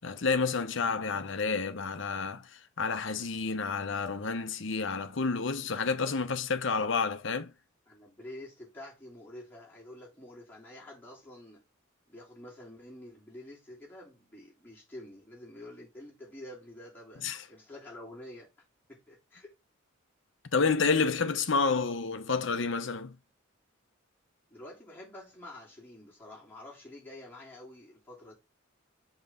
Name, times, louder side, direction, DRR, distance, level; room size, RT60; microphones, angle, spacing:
voice 1, 0.0-7.5 17.2-17.5 20.4-23.2, left 4 dB, 60° left, 0.8 m, -30 dB
voice 2, 7.9-11.6 12.1-17.2 17.5-18.5 18.9-19.5 24.5-28.3, left 1 dB, 10° left, 2.9 m, -48 dB
5.8 x 5.4 x 3.6 m
head